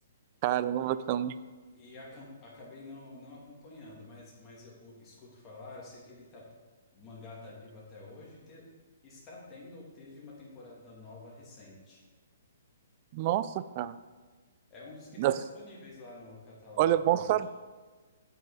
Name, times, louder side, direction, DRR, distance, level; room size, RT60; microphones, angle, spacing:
voice 1, 0.4-1.4 13.1-13.9 15.2-15.4 16.8-17.5, right 12 dB, 40° right, 15 dB, 0.3 m, -27 dB
voice 2, 1.7-6.4 6.9-8.6 9.0-12.0 14.7-17.3, left 2 dB, 25° left, -4 dB, 2.6 m, -49 dB
7.9 x 5.5 x 4.9 m, 1.4 s
hypercardioid pair, 145°, 0 cm